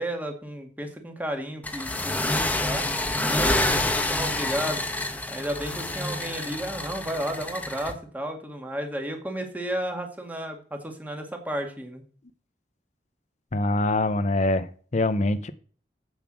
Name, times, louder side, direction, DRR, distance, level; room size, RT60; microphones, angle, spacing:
voice 1, 0.0-2.9 3.3-4.8 5.3-12.0, right 1 dB, 10° right, 4 dB, 1.9 m, -33 dB
sound 1, 1.6-7.9, left 2 dB, 10° left, 1.0 m, -27 dB
voice 2, 13.5-15.5, left 2 dB, 40° left, 11 dB, 0.7 m, -24 dB
8.1 x 7.0 x 6.1 m, 0.43 s
head